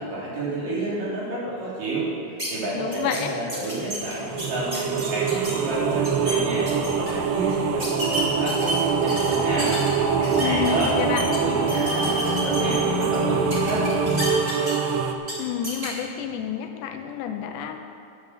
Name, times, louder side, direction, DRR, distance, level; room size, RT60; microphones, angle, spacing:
voice 1, 0.0-2.1 2.5-13.9, right 1 dB, 50° right, -7 dB, 4.2 m, -30 dB
sound 1, 2.4-2.5 2.9-3.2 3.5-5.5 5.9-6.3 6.7-7.1 7.8-9.9 10.2-11.4 11.7-13.2 13.5-14.9 15.2-15.3 15.6-15.9, equal, 20° right, 1.8 m, -31 dB
voice 2, 2.7-3.4 10.4-11.3 15.0-17.8, left 8 dB, 80° left, 5 dB, 2.7 m, -29 dB
sound 2, 3.8-14.3, left 3 dB, 45° left, 1.7 m, -31 dB
sound 3, 4.1-15.2, right 8 dB, 80° right, 2.5 m, -25 dB
11.5 x 8.2 x 7.3 m, 2.4 s
omnidirectional pair, 5.2 m